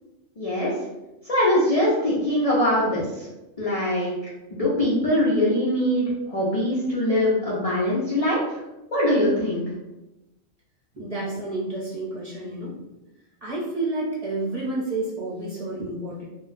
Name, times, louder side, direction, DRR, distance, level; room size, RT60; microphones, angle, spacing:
voice 1, 0.4-0.7 1.2-3.3 3.6-4.1 4.5-8.6 8.9-9.7, left 1 dB, 45° left, -7 dB, 0.5 m, -22 dB
voice 2, 10.9-12.7 13.4-16.3, right 2 dB, 35° right, -7 dB, 0.7 m, -30 dB
2.3 x 2.2 x 3.8 m, 0.99 s
omnidirectional pair, 1.3 m